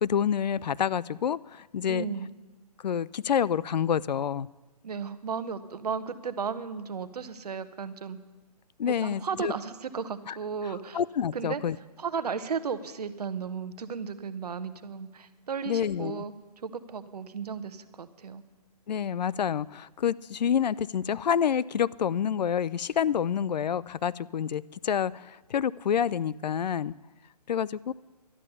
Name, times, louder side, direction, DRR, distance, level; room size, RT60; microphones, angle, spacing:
voice 1, 0.0-2.1 2.8-4.5 8.8-9.5 10.3-10.4 10.9-11.8 15.7-16.2 18.9-26.9 27.5-27.9, left 8 dB, 85° left, 20 dB, 0.4 m, -28 dB
voice 2, 1.8-2.3 4.8-8.2 8.9-11.0 11.3-11.6 12.0-16.3 16.6-18.4, right 6 dB, 70° right, 12 dB, 1.0 m, -34 dB
12.0 x 9.9 x 6.9 m, 1.2 s
hypercardioid pair, 160°, 21 cm